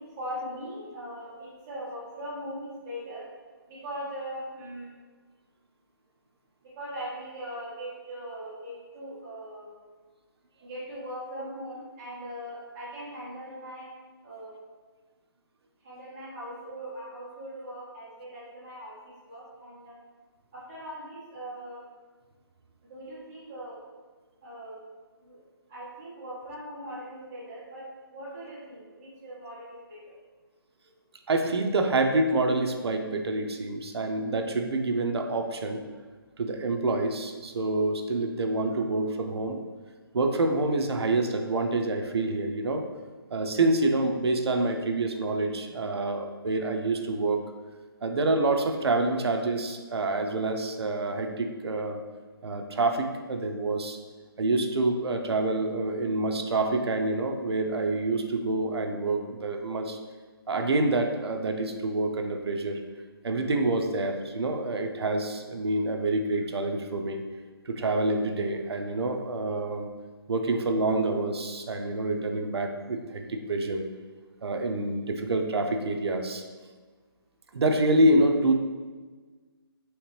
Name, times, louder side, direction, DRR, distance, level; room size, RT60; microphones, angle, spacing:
voice 1, 0.0-3.2 3.7-4.9 6.8-9.7 10.6-13.9 14.2-14.5 15.8-19.0 19.2-20.0 20.5-21.8 22.9-23.8 24.4-24.8 25.2-25.4 25.7-27.8 28.1-30.1, equal, 5° right, -9 dB, 0.3 m, -40 dB
voice 2, 31.3-35.8 36.4-39.6 40.1-42.8 43.3-47.4 48.0-52.0 52.4-54.0 54.4-60.0 60.5-62.8 63.2-67.2 67.7-69.9 70.3-73.8 74.4-76.4 77.5-78.5, right 2 dB, 90° right, 4 dB, 0.5 m, -27 dB
3.2 x 2.9 x 3.1 m, 1.4 s
hypercardioid pair, 170°, 13 cm